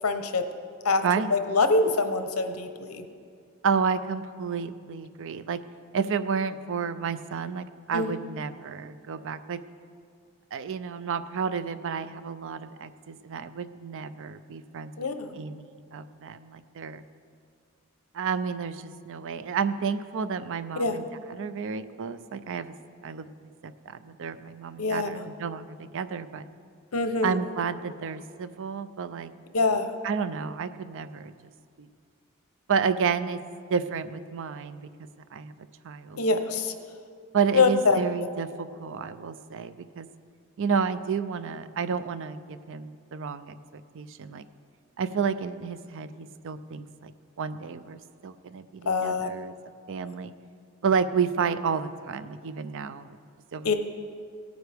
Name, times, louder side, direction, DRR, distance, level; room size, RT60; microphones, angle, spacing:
voice 1, 0.0-0.4 0.8-1.0 1.3-3.0 7.9-8.1 15.0-15.3 20.7-21.0 24.8-25.3 26.9-27.4 29.5-29.9 36.2-36.7 37.5-38.0 48.9-49.3 53.6-53.7, left 3 dB, 80° left, 8 dB, 0.8 m, -24 dB
voice 2, 1.0-1.4 3.6-5.6 5.9-9.6 10.5-15.1 15.3-17.0 18.1-22.7 23.0-26.4 27.2-29.3 30.0-31.3 31.8-31.9 32.7-33.4 33.7-34.9 35.3-35.5 35.8-36.4 37.3-40.1 40.6-44.5 45.0-47.1 47.4-49.6 49.9-50.3 50.8-53.1 53.5-53.7, right 6 dB, 60° right, 13 dB, 0.5 m, -31 dB
17.5 x 9.1 x 3.5 m, 2.2 s
head